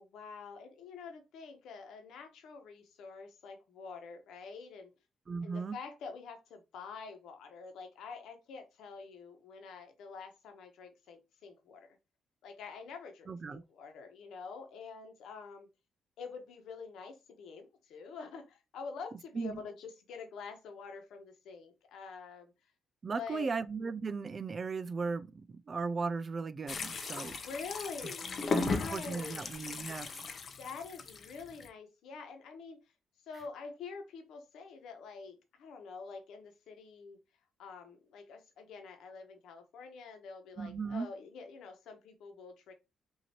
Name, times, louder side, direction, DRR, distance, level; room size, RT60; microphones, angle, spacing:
voice 1, 0.0-4.9 5.4-12.0 12.4-15.7 16.2-22.5 23.2-23.5 27.4-29.4 30.6-32.8 33.3-37.2 37.6-42.7, left 5 dB, 80° left, 1.1 m, -47 dB
voice 2, 5.3-5.8 13.3-13.6 19.3-19.6 23.0-27.4 28.5-30.3 40.6-41.1, right 4 dB, 35° right, 0.4 m, -37 dB
sound 1, 26.7-31.7, left 4 dB, 45° left, 0.7 m, -37 dB
5.6 x 2.8 x 2.9 m
cardioid pair, 90°, 0 cm